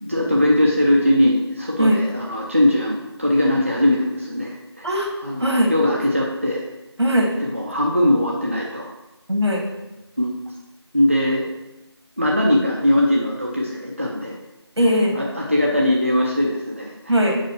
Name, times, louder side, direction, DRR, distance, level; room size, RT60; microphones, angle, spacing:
voice 1, 0.0-4.9 5.2-6.7 7.4-8.8 10.2-10.4 10.9-11.5 12.2-14.4 15.1-17.1, left 1 dB, 30° right, -3 dB, 0.5 m, -20 dB
voice 2, 5.4-5.7 7.0-7.3 9.3-9.6 14.8-15.2 17.1-17.3, equal, 75° right, 1 dB, 1.7 m, -19 dB
4.9 x 4.6 x 5.6 m, 1.0 s
figure-of-eight pair, 175°, 14 cm